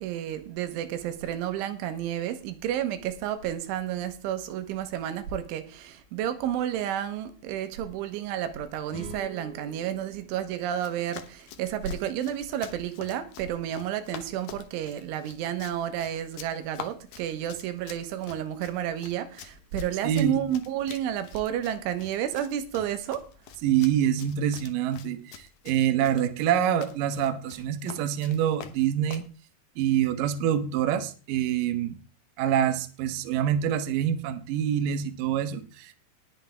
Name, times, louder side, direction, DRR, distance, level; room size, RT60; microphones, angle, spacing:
voice 1, 0.0-23.3, right 10 dB, 90° right, 3.6 m, -31 dB
sound 1, 8.9-12.2, right 1 dB, 50° left, 7.2 m, -47 dB
Run, 10.7-29.3, left 9 dB, 90° left, 1.8 m, -47 dB
voice 2, 20.0-20.4 23.6-29.3 29.8-32.0 32.4-35.9, right 10 dB, 70° right, 2.1 m, -26 dB
19.5 x 7.4 x 3.6 m
omnidirectional pair, 5.4 m